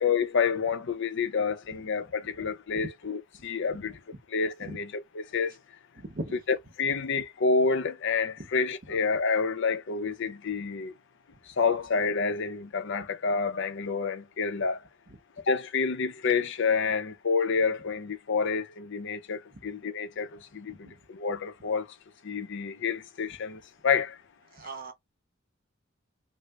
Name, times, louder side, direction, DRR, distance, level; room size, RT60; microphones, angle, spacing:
voice 1, 0.0-4.0 4.3-5.6 6.8-10.9 11.5-14.8 15.5-22.0 22.2-24.2, left 5 dB, 60° left, 0.6 m, -28 dB
voice 2, 6.0-6.3 8.4-8.5 11.3-11.4 15.1-15.2 19.5-19.6 20.7-21.0 24.5-24.9, right 2 dB, 45° right, 0.8 m, -40 dB
3.7 x 2.1 x 3.1 m
head